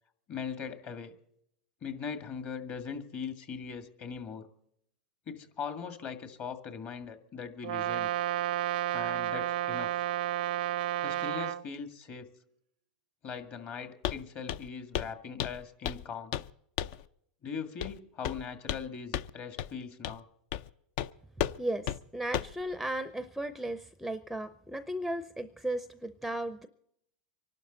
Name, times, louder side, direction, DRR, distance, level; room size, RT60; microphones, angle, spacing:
voice 1, 0.3-1.1 1.8-4.5 5.3-8.1 8.9-9.9 11.0-12.3 13.2-16.4 17.4-20.3, left 6 dB, 40° left, 8 dB, 1.9 m, -40 dB
Brass instrument, 7.6-11.6, right 13 dB, 80° right, 0.5 m, -31 dB
Walk footsteps, 14.0-14.2 14.5-14.7 14.9-15.1 15.4-16.0 16.3-16.5 16.8-17.0 17.8-18.0 18.2-18.9 19.1-19.3 19.6-19.7 20.0-20.2 20.5-20.7 21.0-21.1 21.4-21.6 21.9-22.0 22.3-22.6, left 10 dB, 60° left, 0.5 m, -33 dB
voice 2, 22.1-26.7, right 1 dB, ahead, 12 dB, 0.6 m, -35 dB
25.0 x 12.0 x 4.0 m, 0.74 s
supercardioid pair, 130°, 5 cm